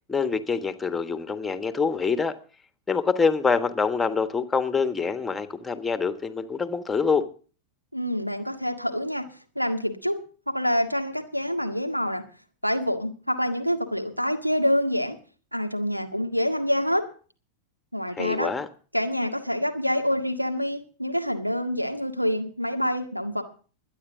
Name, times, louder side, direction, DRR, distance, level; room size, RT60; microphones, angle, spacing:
voice 1, 0.1-2.3 2.9-7.3 18.2-18.7, left 5 dB, 10° left, 10 dB, 1.4 m, -25 dB
voice 2, 7.9-9.3 9.6-10.2 10.5-12.2 12.6-15.2 15.5-17.0 17.9-18.5 18.9-23.4, equal, 90° right, 5 dB, 1.7 m, -26 dB
22.5 x 10.0 x 3.8 m, 0.40 s
figure-of-eight pair, 90°, 0 cm